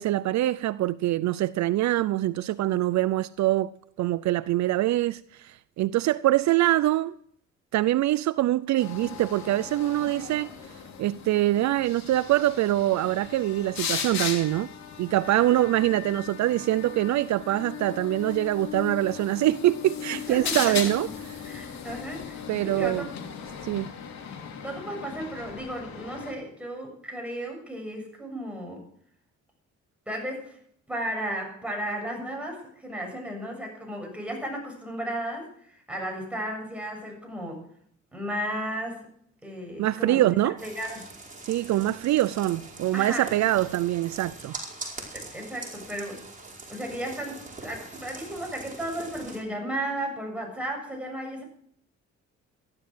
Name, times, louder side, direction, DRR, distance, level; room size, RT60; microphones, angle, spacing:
voice 1, 0.0-7.1 7.7-10.5 11.0-14.7 15.0-21.1 22.5-23.1 23.6-23.9 39.8-40.6 41.4-44.6, right 15 dB, 70° right, 0.5 m, -24 dB
sound 1, 8.8-26.3, left 7 dB, 65° left, 3.2 m, -37 dB
voice 2, 20.1-20.8 21.5-23.1 24.6-28.8 30.1-30.6 30.9-37.6 38.1-39.1 39.4-40.2 40.6-41.1 42.9-43.3 45.1-46.2 46.7-51.4, right 1 dB, 5° right, 7.1 m, -34 dB
sound 2, 40.6-49.4, right 3 dB, 25° right, 5.1 m, -42 dB
14.5 x 11.5 x 6.3 m
cardioid pair, 90°, 30 cm